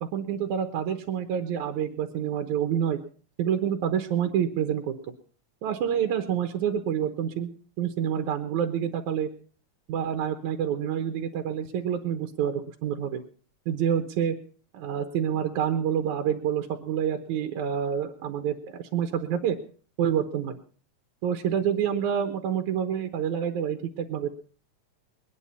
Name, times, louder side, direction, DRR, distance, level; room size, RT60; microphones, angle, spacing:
voice 1, 0.0-3.0 3.4-5.0 5.6-7.5 7.8-9.3 9.9-13.2 13.7-14.4 14.7-19.6 20.0-20.6 21.2-24.3, right 9 dB, 90° right, 6 dB, 2.4 m, -27 dB
21.5 x 10.0 x 5.5 m, 0.41 s
omnidirectional pair, 3.3 m